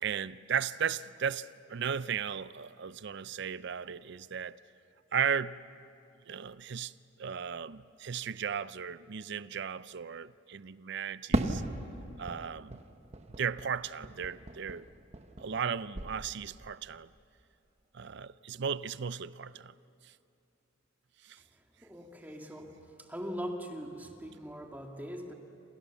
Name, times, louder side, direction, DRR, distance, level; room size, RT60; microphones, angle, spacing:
voice 1, 0.0-4.6 5.1-5.6 6.3-6.9 7.2-11.6 12.2-12.8 13.4-14.9 15.4-17.1 17.9-19.7 20.0-20.1 21.2-21.4, right 7 dB, 60° right, 0.5 m, -35 dB
Fireworks, 11.3-15.7 15.9-16.7, right 1 dB, 30° right, 1.2 m, -36 dB
voice 2, 21.8-22.8 23.1-25.3, equal, 10° right, 2.1 m, -41 dB
28.0 x 27.5 x 7.1 m
head